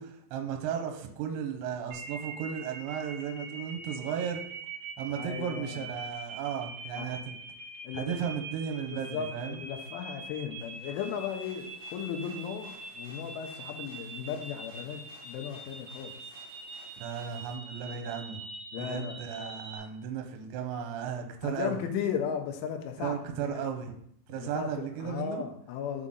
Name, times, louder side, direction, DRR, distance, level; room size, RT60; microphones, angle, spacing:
voice 1, 0.0-4.4 5.0-7.3 7.9-9.6 17.0-18.4 18.8-21.8 23.0-23.9 24.3-25.4, right 8 dB, 85° right, 4 dB, 2.7 m, -35 dB
sound 1, 1.9-19.8, right 3 dB, 65° right, 1.5 m, -43 dB
voice 2, 5.2-5.9 7.0-7.2 7.8-8.2 8.9-16.1 18.7-19.5 21.4-23.7 24.4-26.1, left 8 dB, 85° left, 5 dB, 3.2 m, -36 dB
sound 2, 10.6-17.5, left 1 dB, 55° left, 3.1 m, -57 dB
7.4 x 3.9 x 3.8 m, 0.67 s
omnidirectional pair, 5.5 m